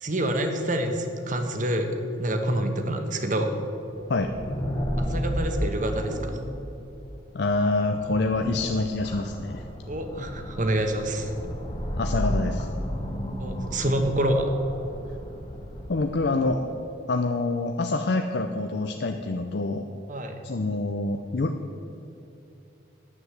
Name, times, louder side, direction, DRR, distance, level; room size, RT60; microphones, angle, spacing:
voice 1, 0.0-3.5 5.0-6.4 9.9-11.3 13.4-14.5 20.1-20.4, right 1 dB, 40° right, 5 dB, 1.1 m, -27 dB
sound 1, 4.0-16.6, equal, 25° left, 1.1 m, -33 dB
voice 2, 7.3-9.6 12.0-12.7 15.9-16.6 17.1-19.8 20.4-21.8, left 2 dB, 55° left, 6 dB, 0.5 m, -26 dB
9.7 x 8.0 x 8.0 m, 3.0 s
head